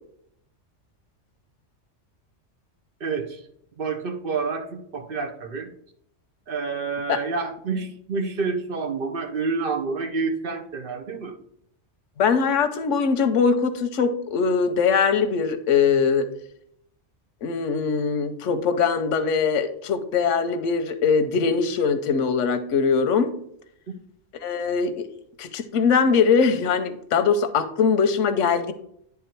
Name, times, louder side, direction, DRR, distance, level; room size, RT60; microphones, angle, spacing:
voice 1, 3.0-3.4 3.8-5.7 6.5-11.3, right 4 dB, 55° right, 6 dB, 0.9 m, -28 dB
voice 2, 12.2-16.3 17.4-23.3 24.4-25.1 25.4-28.7, left 5 dB, 90° left, 11 dB, 1.0 m, -21 dB
9.7 x 3.5 x 4.5 m, 0.72 s
omnidirectional pair, 1.2 m